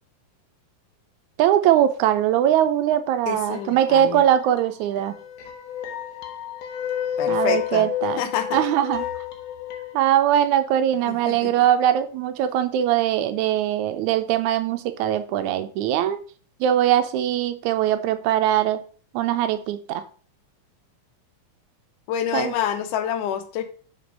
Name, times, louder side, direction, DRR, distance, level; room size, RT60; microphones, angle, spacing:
voice 1, 1.4-5.2 7.3-8.2 8.5-9.1 9.9-16.2 16.6-18.8 19.1-20.0 22.3-22.5, right 11 dB, 80° right, 9 dB, 2.0 m, -21 dB
voice 2, 3.3-4.2 7.2-7.9 8.2-8.6 11.1-11.5 22.1-23.6, left 9 dB, 90° left, 8 dB, 2.4 m, -27 dB
sound 1, 3.5-4.6 5.0-9.9, left 10 dB, 70° left, 1.9 m, -30 dB
5.1 x 5.1 x 5.0 m, 0.42 s
omnidirectional pair, 3.5 m